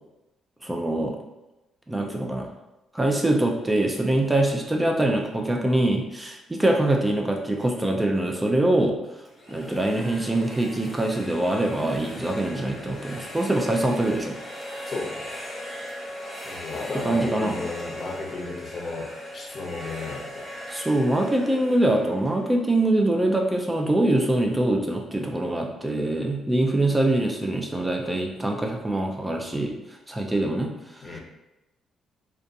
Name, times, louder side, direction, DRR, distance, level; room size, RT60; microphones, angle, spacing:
voice 1, 0.6-1.2 1.9-2.5 2.9-9.0 9.5-14.3 17.0-17.6 20.7-29.7 30.1-31.2, right 1 dB, 15° right, 1 dB, 0.3 m, -24 dB
sound 1, 9.3-23.1, equal, 20° left, 0.8 m, -39 dB
voice 2, 14.8-15.3 16.5-20.6 31.0-31.2, left 3 dB, 45° left, -1 dB, 0.6 m, -34 dB
2.5 x 2.2 x 2.6 m, 0.98 s
cardioid pair, 90°, 0 cm